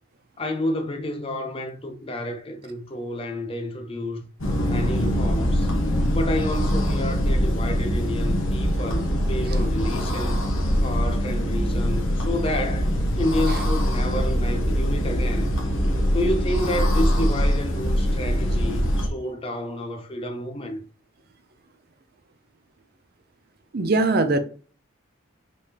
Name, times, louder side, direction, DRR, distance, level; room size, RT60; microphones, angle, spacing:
voice 1, 0.4-4.2 4.7-5.7 6.1-10.4 10.8-15.6 16.1-20.8, left 1 dB, 25° left, 0.6 m, -30 dB
sound 1, 4.4-19.1, equal, 70° left, 1.0 m, -23 dB
voice 2, 23.7-24.4, right 2 dB, 50° right, 0.5 m, -20 dB
5.2 x 3.4 x 2.8 m
head